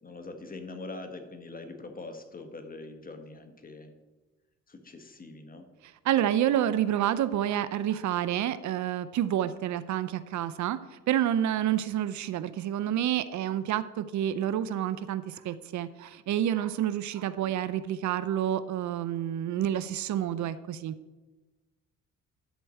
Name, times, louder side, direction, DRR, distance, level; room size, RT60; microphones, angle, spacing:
voice 1, 0.0-3.9 4.7-5.7 17.4-17.5, left 3 dB, 30° left, 6 dB, 1.4 m, -43 dB
voice 2, 6.0-10.8 11.1-20.9, right 11 dB, 70° right, 14 dB, 0.6 m, -29 dB
11.0 x 4.6 x 7.6 m, 1.2 s
cardioid pair, 90°, 30 cm